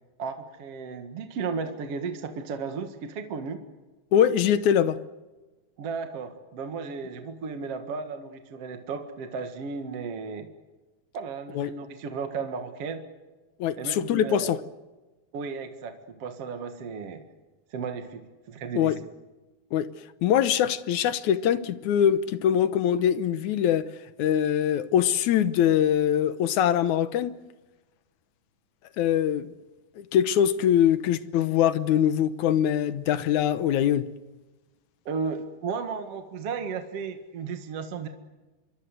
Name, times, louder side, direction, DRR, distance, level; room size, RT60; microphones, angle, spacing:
voice 1, 0.2-3.6 5.8-10.5 11.1-13.0 13.8-14.5 15.3-17.2 17.7-18.2 18.5-19.0 35.1-38.1, right 5 dB, 50° right, 6 dB, 2.3 m, -34 dB
voice 2, 4.1-5.0 11.6-11.7 13.6-14.6 18.8-19.0 19.7-19.9 20.2-23.9 24.2-27.3 29.0-29.5 30.0-34.1, left 9 dB, 70° left, 13 dB, 2.0 m, -23 dB
26.5 x 24.0 x 8.1 m, 1.2 s
omnidirectional pair, 4.2 m